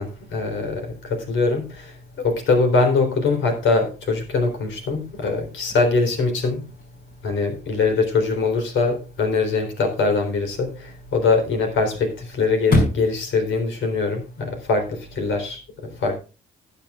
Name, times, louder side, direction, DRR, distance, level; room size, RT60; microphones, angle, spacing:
voice 1, 0.0-6.6 7.2-16.2, left 3 dB, 75° left, 4 dB, 3.8 m, -22 dB
Chirp tweet / Car / Slam, 4.9-14.9, left 2 dB, 45° left, 5.4 m, -32 dB
20.0 x 7.5 x 2.4 m, 0.32 s
cardioid pair, 90°, 20 cm